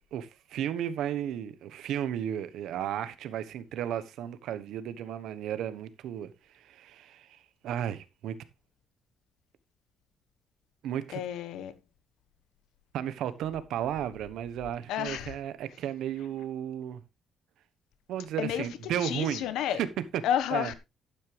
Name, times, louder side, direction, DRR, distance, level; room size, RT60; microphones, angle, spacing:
voice 1, 0.1-6.3 6.5-8.4 10.8-11.2 12.9-17.0 18.1-19.5 19.8-19.9 20.5-20.7, right 10 dB, 75° right, 1.1 m, -34 dB
voice 2, 11.1-11.8 14.9-15.4 18.4-19.8 20.2-20.7, left 10 dB, 85° left, 1.2 m, -31 dB
11.5 x 9.2 x 3.3 m
cardioid pair, 160°, 0 cm